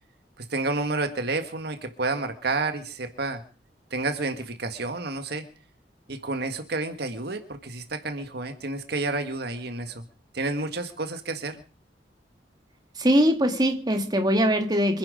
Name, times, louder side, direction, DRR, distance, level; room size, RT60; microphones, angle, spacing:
voice 1, 0.4-3.4 3.9-5.4 6.1-10.0 10.3-11.6, right 3 dB, 65° right, 1.6 m, -30 dB
voice 2, 13.0-15.0, equal, 25° right, 2.2 m, -22 dB
25.5 x 10.5 x 5.1 m
head